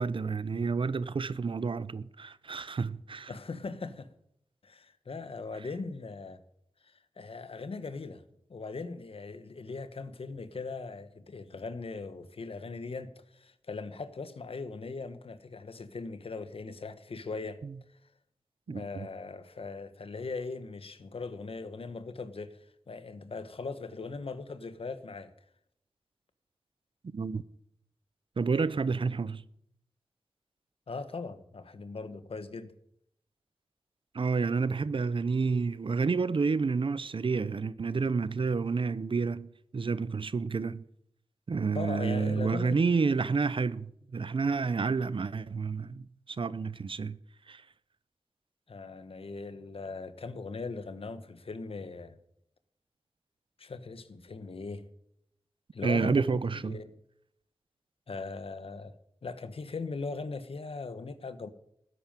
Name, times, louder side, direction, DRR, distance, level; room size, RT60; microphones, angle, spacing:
voice 1, 0.0-3.3 17.6-17.7 18.7-19.1 27.1-27.4 28.4-29.4 34.1-40.8 41.5-47.2 47.5-47.6 55.8-56.8, right 4 dB, 60° right, 0.7 m, -29 dB
voice 2, 3.3-4.1 4.6-6.4 6.8-8.2 8.5-17.6 18.7-25.3 30.9-32.7 41.7-42.8 48.7-52.1 53.6-54.9 55.7-56.2 56.6-56.9 58.1-59.0 59.2-61.5, left 4 dB, 70° left, 1.3 m, -39 dB
13.0 x 10.0 x 9.0 m
wide cardioid pair, 65°, 10 cm